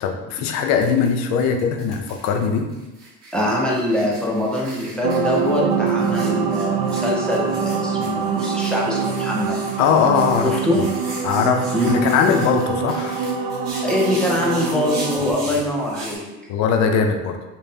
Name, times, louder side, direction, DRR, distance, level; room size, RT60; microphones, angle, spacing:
voice 1, 0.0-2.7 9.8-10.6 11.2-13.2 16.5-17.4, left 6 dB, 60° left, 5 dB, 0.5 m, -20 dB
sound 1, 0.8-1.1 1.4-16.2, right 2 dB, 50° right, 1.5 m, -39 dB
voice 2, 3.3-9.6 10.4-11.0 11.7-12.1 13.8-16.3, left 1 dB, 5° left, -4 dB, 0.4 m, -23 dB
sound 2, 5.0-15.3, right 5 dB, 90° right, 0.5 m, -24 dB
5.2 x 2.0 x 2.6 m, 1.1 s
cardioid pair, 170°, 31 cm